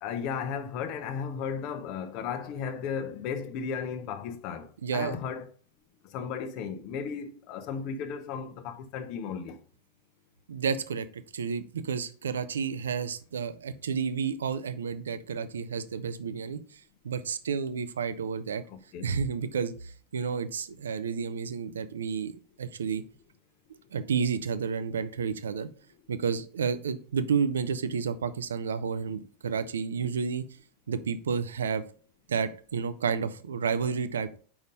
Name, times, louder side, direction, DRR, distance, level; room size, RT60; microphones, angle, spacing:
voice 1, 0.0-5.5 6.0-9.6 18.7-19.1, left 6 dB, 40° left, 0.8 m, -35 dB
voice 2, 4.8-5.1 10.5-11.1 11.3-16.6 17.0-18.6 19.0-22.3 22.6-23.0 23.9-25.7 26.1-30.4 30.9-31.8 32.3-34.4, right 6 dB, 65° right, 0.6 m, -31 dB
5.3 x 4.9 x 5.2 m
figure-of-eight pair, 90°, 0 cm